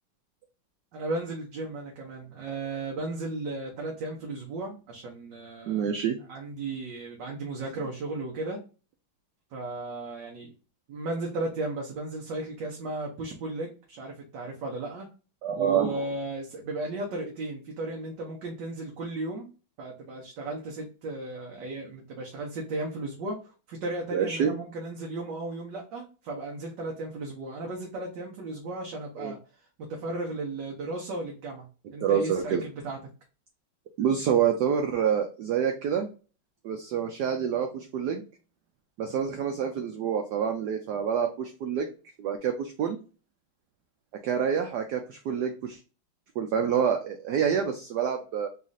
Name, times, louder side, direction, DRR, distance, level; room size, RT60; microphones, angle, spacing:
voice 1, 0.9-5.8 6.3-8.6 9.5-10.5 10.9-15.1 15.5-19.5 19.8-29.4 29.9-31.7 31.9-33.0, right 2 dB, 65° right, -1 dB, 1.3 m, -35 dB
voice 2, 5.7-6.2 15.4-16.0 24.1-24.5 29.2-29.3 32.0-32.6 34.0-36.1 36.6-38.2 39.0-41.9 42.2-43.0 44.2-45.8 46.4-48.5, right 8 dB, 80° right, 5 dB, 0.9 m, -27 dB
4.1 x 2.4 x 3.9 m, 0.35 s
omnidirectional pair, 2.3 m